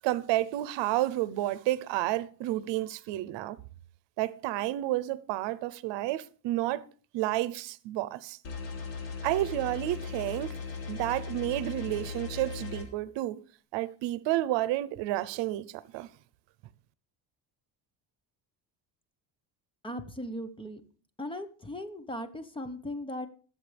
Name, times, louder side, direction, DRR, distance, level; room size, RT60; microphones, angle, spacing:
voice 1, 0.0-3.6 4.2-6.9 7.1-8.4 9.2-10.5 10.9-13.4 13.7-16.1, right 15 dB, 85° right, 0.8 m, -30 dB
sound 1, 8.4-12.8, left 5 dB, 80° left, 3.4 m, -38 dB
voice 2, 19.8-20.8 21.2-23.3, left 1 dB, 10° left, 1.0 m, -38 dB
22.0 x 7.8 x 3.4 m
cardioid pair, 140°, 43 cm